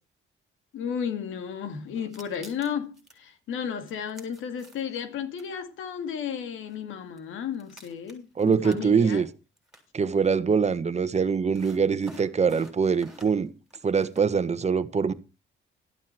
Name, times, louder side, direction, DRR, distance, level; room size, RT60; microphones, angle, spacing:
voice 1, 0.7-9.2, left 7 dB, 80° left, 2.3 m, -33 dB
sound 1, 2.0-3.2 3.8-5.0 5.4-5.5 6.7-6.8 7.2-7.3 7.5-9.2 9.6-9.9 11.5-13.4 13.7-14.3, right 1 dB, 5° right, 7.5 m, -47 dB
voice 2, 8.4-9.3 9.9-13.5 13.8-15.1, right 5 dB, 35° right, 1.3 m, -23 dB
13.5 x 11.5 x 4.5 m
cardioid pair, 90°, 20 cm